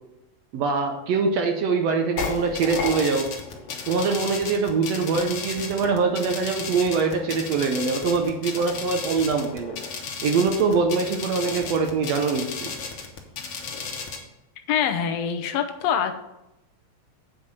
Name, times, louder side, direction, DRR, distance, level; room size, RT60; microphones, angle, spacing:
voice 1, 0.5-3.3 3.9-9.8 10.2-12.7, right 4 dB, 70° right, 4 dB, 1.6 m, -23 dB
sound 1, 2.2-14.2, left 5 dB, 55° left, 1.8 m, -34 dB
voice 2, 14.7-16.1, left 8 dB, 75° left, 6 dB, 1.5 m, -24 dB
9.0 x 4.7 x 7.1 m, 0.90 s
omnidirectional pair, 3.7 m